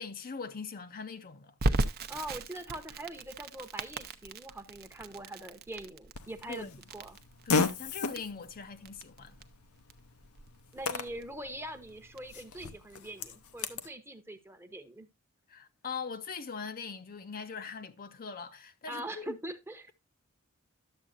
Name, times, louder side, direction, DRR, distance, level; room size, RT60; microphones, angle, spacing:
voice 1, 0.0-1.5 6.5-6.7 7.5-9.3 15.5-19.4, left 5 dB, 40° left, 0.5 m, -41 dB
Crackle, 1.6-12.3, right 2 dB, 45° right, 0.6 m, -37 dB
voice 2, 2.1-7.2 10.7-15.1 18.9-19.9, right 1 dB, 10° right, 0.8 m, -43 dB
Fart, 6.1-13.9, left 4 dB, 85° left, 0.8 m, -36 dB
11.5 x 7.4 x 2.5 m
head